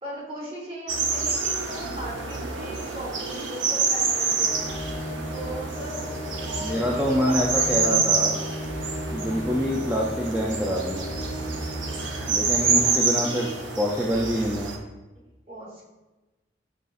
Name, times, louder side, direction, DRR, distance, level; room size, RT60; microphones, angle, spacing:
voice 1, 0.0-4.8 5.3-8.1 12.8-13.7 15.5-15.8, right 1 dB, 30° right, -5 dB, 1.3 m, -38 dB
sound 1, 0.9-14.8, right 4 dB, 75° right, 0.6 m, -27 dB
sound 2, 4.4-12.9, equal, 50° left, 0.6 m, -35 dB
voice 2, 6.6-8.4 9.1-11.0 12.3-13.5 13.8-14.7, equal, 5° right, -4 dB, 0.4 m, -25 dB
4.9 x 3.8 x 2.4 m, 1.1 s
head